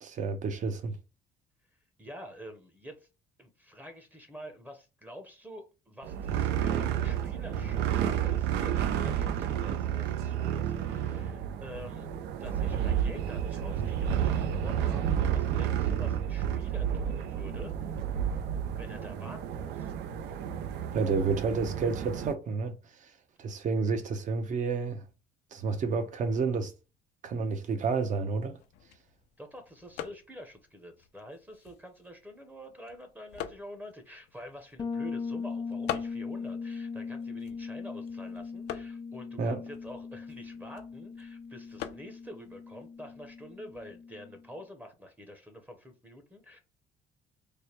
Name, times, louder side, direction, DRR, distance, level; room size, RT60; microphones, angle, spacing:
voice 1, 0.0-1.0 20.9-22.7 23.0-23.1 23.4-25.0 25.5-26.7 27.2-28.6 39.4-39.6, right 4 dB, 45° right, 0.8 m, -30 dB
voice 2, 2.0-3.1 3.4-12.1 12.4-17.8 18.8-19.9 29.4-46.6, equal, 10° right, 0.7 m, -47 dB
sound 1, 6.0-22.3, right 9 dB, 80° right, 0.5 m, -31 dB
sound 2, 28.4-44.0, left 11 dB, 85° left, 0.5 m, -46 dB
Bass guitar, 34.8-44.5, left 5 dB, 25° left, 0.4 m, -39 dB
3.3 x 2.2 x 4.3 m
cardioid pair, 110°, 17 cm